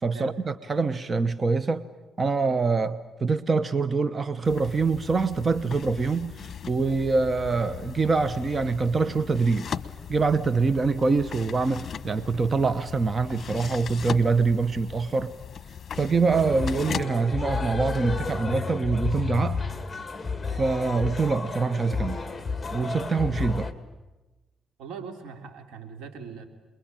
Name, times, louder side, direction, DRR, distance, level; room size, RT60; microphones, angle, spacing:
voice 1, 0.0-1.8 2.2-9.7 10.1-15.3 15.9-19.6 20.6-22.2 22.7-23.7, right 4 dB, 35° right, 1.0 m, -25 dB
sound 1, 4.4-17.1, left 7 dB, 50° left, 1.1 m, -38 dB
sound 2, 16.3-23.7, left 4 dB, 15° left, 2.2 m, -31 dB
voice 2, 24.8-26.5, right 6 dB, 90° right, 3.3 m, -40 dB
28.0 x 22.0 x 9.0 m
cardioid pair, 90°, 0 cm